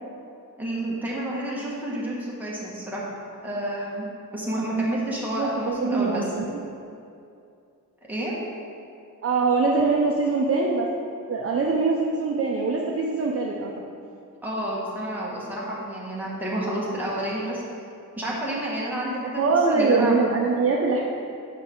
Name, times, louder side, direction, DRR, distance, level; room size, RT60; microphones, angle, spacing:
voice 1, 0.6-3.0 3.4-6.2 8.1-8.4 14.4-17.6 18.2-20.3, right 1 dB, 5° right, -6 dB, 1.4 m, -29 dB
voice 2, 5.4-6.6 9.2-10.9 11.3-13.7 19.4-21.0, right 4 dB, 40° right, -1 dB, 0.5 m, -23 dB
8.1 x 5.3 x 3.7 m, 2.5 s
wide cardioid pair, 155°, 35 cm